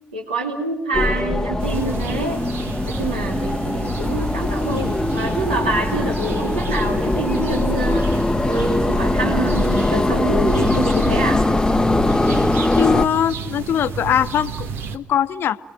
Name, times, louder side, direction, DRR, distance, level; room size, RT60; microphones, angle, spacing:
voice 1, 0.1-2.4 2.9-8.2 8.5-11.4, right 2 dB, 85° right, 1 dB, 2.8 m, -26 dB
sound 1, 0.9-13.1, left 2 dB, 15° left, 1.0 m, -21 dB
sound 2, 1.6-15.0, right 5 dB, 60° right, 1.7 m, -31 dB
voice 2, 12.7-15.6, left 9 dB, 55° left, 13 dB, 1.0 m, -21 dB
30.0 x 22.0 x 9.1 m, 0.86 s
figure-of-eight pair, 45°, 4 cm